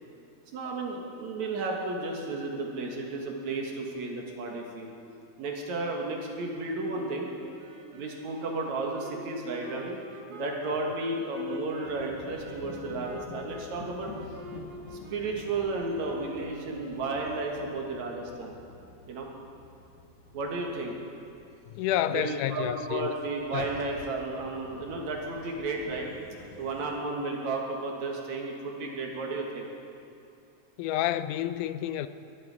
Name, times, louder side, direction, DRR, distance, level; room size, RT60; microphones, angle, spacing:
voice 1, 0.5-4.9 5.4-7.3 7.9-10.0 10.3-14.1 14.9-18.5 19.1-19.3 20.3-21.0 22.1-26.1 26.6-29.7, right 3 dB, 70° right, 0 dB, 2.8 m, -33 dB
sound 1, 6.9-17.4, right 1 dB, 90° right, 0.8 m, -47 dB
sound 2, 11.8-26.9, left 3 dB, 70° left, 2.5 m, -49 dB
voice 2, 21.7-23.1 23.5-23.7 30.8-32.1, left 12 dB, 85° left, 13 dB, 2.1 m, -29 dB
20.5 x 11.0 x 4.8 m, 2.8 s
omnidirectional pair, 3.5 m